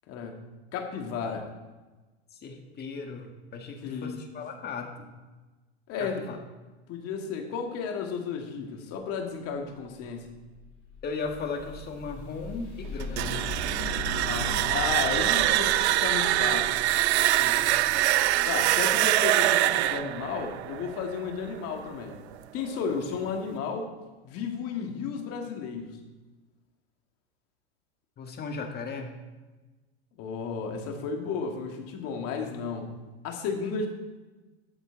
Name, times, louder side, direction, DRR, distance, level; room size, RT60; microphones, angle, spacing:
voice 1, 0.1-0.4 0.7-1.5 3.8-4.2 5.9-6.2 6.9-10.3 14.2-16.8 18.5-22.2 22.5-23.9 24.2-26.0 30.2-32.9 33.2-33.9, left 5 dB, 45° left, 3 dB, 2.2 m, -33 dB
voice 2, 2.3-5.1 6.0-6.4 11.0-13.5 17.4-17.7 28.2-29.2, left 4 dB, 30° left, 4 dB, 1.9 m, -37 dB
sound 1, 10.1-20.5, left 3 dB, 85° left, 3.6 m, -40 dB
sound 2, 13.0-21.8, right 15 dB, 75° right, 0.6 m, -24 dB
13.0 x 8.1 x 4.0 m, 1.2 s
hypercardioid pair, 110°, 33 cm